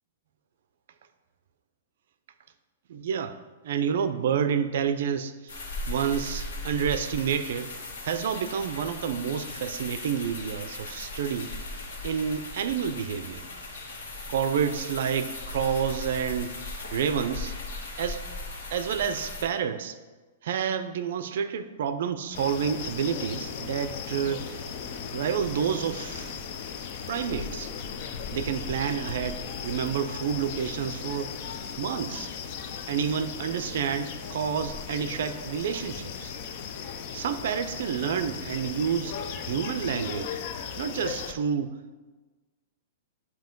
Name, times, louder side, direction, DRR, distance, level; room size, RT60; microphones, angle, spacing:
voice 1, 2.9-3.4 3.6-5.5 5.9-7.7 8.0-11.6 12.0-13.4 14.3-16.5 16.9-17.5 18.0-18.2 18.7-20.0 20.4-24.7 25.1-26.4 27.1-27.7 28.3-31.3 31.8-32.3 32.9-36.3 37.1-39.2 39.5-40.4 40.8-41.8, right 7 dB, 60° right, 11 dB, 0.4 m, -29 dB
sound 1, 5.5-19.4, left 2 dB, 85° left, 1.5 m, -38 dB
sound 2, 22.3-41.3, left 7 dB, 35° left, 0.4 m, -37 dB
7.7 x 2.8 x 5.2 m, 1.3 s
hypercardioid pair, 170°, 0 cm